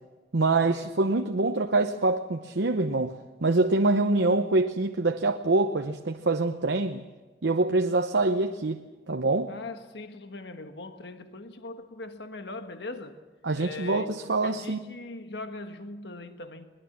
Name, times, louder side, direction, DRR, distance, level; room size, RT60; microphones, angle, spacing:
voice 1, 0.3-7.1 7.4-9.6 13.4-14.8, right 2 dB, 80° right, 0.8 m, -25 dB
voice 2, 9.5-13.2 13.5-16.7, left 2 dB, 70° left, 1.4 m, -40 dB
21.5 x 21.0 x 7.3 m
head